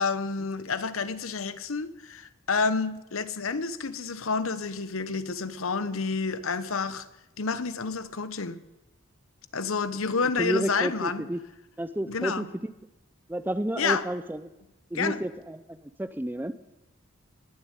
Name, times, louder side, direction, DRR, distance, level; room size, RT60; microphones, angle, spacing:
voice 1, 0.0-7.0 7.4-8.6 9.5-11.2 12.1-12.5 13.8-14.1 14.9-15.2, left 4 dB, 75° left, 0.9 m, -29 dB
voice 2, 10.4-11.4 11.8-12.5 13.3-14.5 14.9-16.5, right 1 dB, 10° right, 0.5 m, -31 dB
20.5 x 7.3 x 9.0 m
head